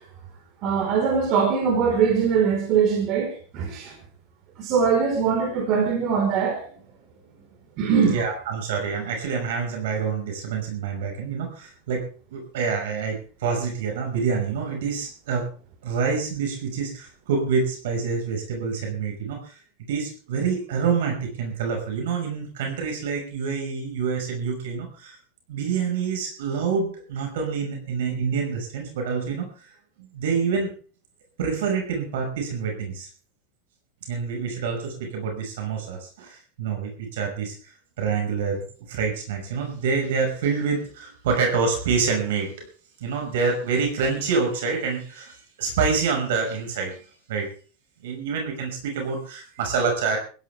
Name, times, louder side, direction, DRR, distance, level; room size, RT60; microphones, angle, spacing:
voice 1, 0.6-3.9 4.6-6.7 7.8-8.3, right 6 dB, 45° right, 1 dB, 4.7 m, -22 dB
voice 2, 8.0-12.0 12.3-15.5 15.8-19.5 19.9-25.2 25.5-29.5 30.0-30.7 31.4-33.1 34.1-37.5 38.0-42.7 43.0-47.5 48.0-50.2, right 5 dB, 85° right, 2 dB, 5.9 m, -27 dB
21.0 x 16.0 x 3.5 m, 0.38 s
supercardioid pair, 150°, 0 cm